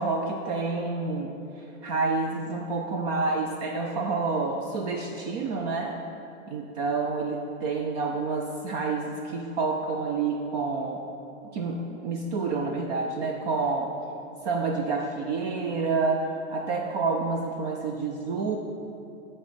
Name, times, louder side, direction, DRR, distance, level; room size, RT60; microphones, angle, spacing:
voice 1, 0.0-6.0 6.5-11.0 11.5-13.9 14.4-18.6, right 4 dB, 30° right, 3 dB, 0.4 m, -28 dB
12.5 x 4.2 x 5.0 m, 2.8 s
hypercardioid pair, 120°, 41 cm